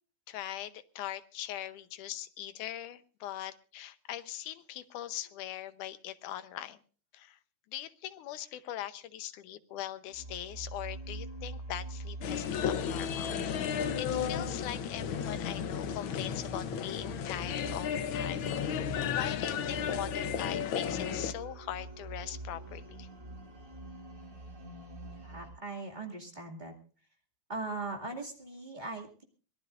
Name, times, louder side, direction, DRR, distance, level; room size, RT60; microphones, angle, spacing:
voice 1, 0.3-6.8 7.1-7.4 7.7-13.4 13.7-18.5 19.0-23.1, left 12 dB, 90° left, 12 dB, 2.4 m, -41 dB
sound 1, 10.1-25.5, right 2 dB, 60° right, 9.5 m, -44 dB
sound 2, 12.2-21.3, left 8 dB, 70° left, 1.2 m, -34 dB
voice 2, 25.2-26.7 27.5-29.2, right 3 dB, 15° right, 1 dB, 1.9 m, -40 dB
24.0 x 18.5 x 2.5 m, 0.40 s
omnidirectional pair, 3.5 m